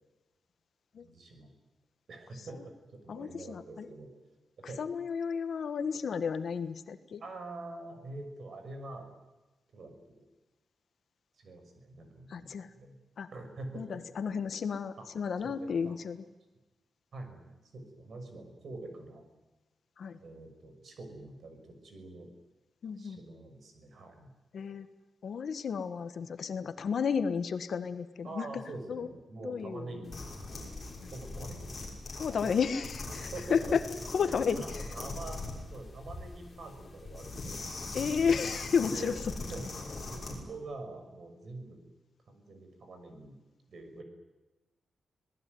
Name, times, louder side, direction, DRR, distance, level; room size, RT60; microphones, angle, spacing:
voice 1, 1.0-1.5 2.1-4.2 4.6-4.8 7.2-9.1 9.7-10.2 11.3-12.5 12.7-13.0 13.3-14.0 15.0-15.1 15.4-15.9 17.1-19.2 20.2-22.3 23.0-24.3 28.2-30.2 31.1-31.8 32.1-32.2 33.3-34.0 34.2-35.4 35.7-37.6 38.9-39.2 39.5-41.8 42.3-43.4 43.7-44.0, right 2 dB, 50° right, 6 dB, 6.3 m, -45 dB
voice 2, 3.1-3.9 4.8-7.2 12.3-12.7 13.2-13.3 13.7-16.2 20.0-20.2 22.8-23.2 24.5-24.9 25.2-28.6 28.9-29.1 29.4-29.9 31.0-31.1 32.1-33.8 34.1-34.6 37.9-39.1, left 6 dB, 55° left, 10 dB, 1.5 m, -32 dB
sound 1, 30.0-40.4, left 2 dB, 25° left, 6.0 m, -41 dB
26.0 x 19.0 x 9.5 m, 1.1 s
wide cardioid pair, 175°, 0 cm